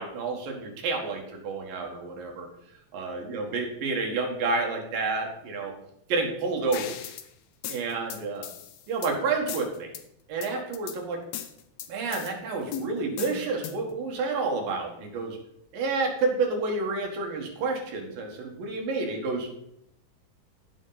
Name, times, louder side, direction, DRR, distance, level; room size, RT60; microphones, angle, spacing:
voice 1, 0.0-2.5 2.9-5.8 6.1-7.0 7.7-8.5 8.9-9.9 10.3-11.2 11.9-15.4 15.7-19.5, right 3 dB, 85° right, 1 dB, 3.4 m, -29 dB
sound 1, 6.7-7.3 7.6-9.1 9.5-10.0 10.4-11.0 11.3-12.3 12.7-13.9, left 9 dB, 80° left, 1.4 m, -37 dB
16.0 x 5.3 x 4.0 m, 0.75 s
omnidirectional pair, 3.9 m